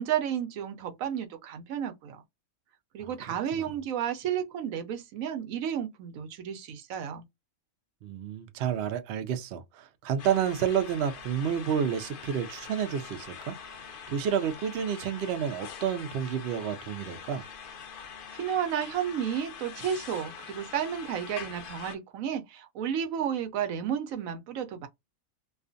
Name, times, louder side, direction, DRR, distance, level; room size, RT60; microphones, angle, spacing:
voice 1, 0.0-2.2 2.9-7.2 18.3-24.9, right 9 dB, 80° right, 1.0 m, -32 dB
voice 2, 3.0-3.7 8.0-17.4, right 8 dB, 65° right, 0.7 m, -30 dB
sound 1, 10.2-22.0, left 6 dB, 65° left, 0.5 m, -44 dB
2.4 x 2.3 x 2.5 m
omnidirectional pair, 1.4 m